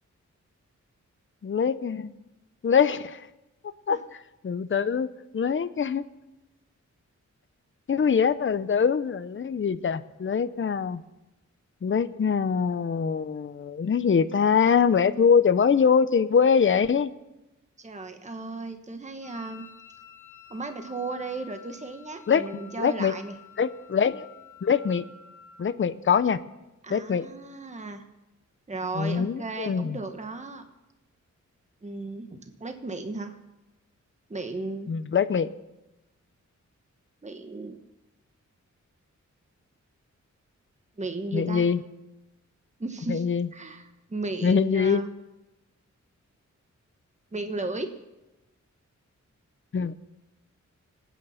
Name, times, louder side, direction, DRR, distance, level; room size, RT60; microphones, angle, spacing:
voice 1, 1.4-2.1 2.6-3.3 3.9-4.0 4.4-6.0 7.9-11.0 11.8-17.1 22.3-22.4 22.8-23.1 23.6-24.2 24.6-25.0 25.6-26.4 26.9-27.3 29.0-30.0 34.9-35.5 41.3-41.8 43.1-43.5 44.4-45.0 49.7-50.0, left 6 dB, 40° left, 13 dB, 0.7 m, -23 dB
voice 2, 17.8-19.7 20.5-23.3 26.8-28.0 28.7-30.6 31.8-33.4 34.3-34.9 37.2-37.8 41.0-41.7 42.8-43.3 43.5-45.1 47.3-47.9, right 3 dB, 25° right, 7 dB, 1.3 m, -35 dB
Wind instrument woodwind instrument, 19.2-25.8, left 7 dB, 90° left, 1.1 m, -50 dB
25.5 x 9.4 x 5.8 m, 1.0 s
wide cardioid pair, 100°, 30 cm